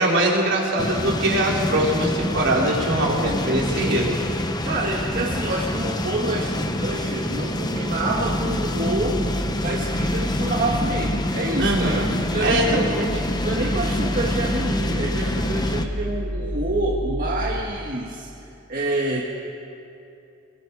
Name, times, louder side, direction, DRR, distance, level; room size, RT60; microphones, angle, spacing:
voice 1, 0.0-4.1 11.6-12.1 12.4-13.1, right 1 dB, 65° right, -3 dB, 4.4 m, -22 dB
sound 1, 0.8-15.9, left 1 dB, 20° left, 1.0 m, -26 dB
voice 2, 4.6-9.2 9.6-13.0 13.4-18.3 18.7-19.2, right 2 dB, 45° right, -2 dB, 1.7 m, -27 dB
sound 2, 8.1-17.6, equal, 80° right, 4.0 m, -30 dB
27.5 x 21.0 x 4.8 m, 2.8 s
head